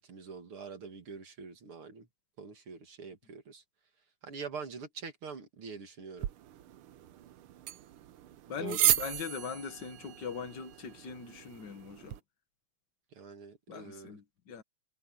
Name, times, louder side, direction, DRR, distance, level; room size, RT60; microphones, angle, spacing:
voice 1, 0.0-2.1 2.4-3.6 4.2-6.3 8.6-9.0 13.1-14.2, right 5 dB, 50° right, 2.7 m, -44 dB
sound 1, 6.2-12.2, right 12 dB, 90° right, 1.2 m, -35 dB
voice 2, 8.5-12.2 13.7-14.6, left 7 dB, 45° left, 1.7 m, -41 dB
omnidirectional pair, 3.5 m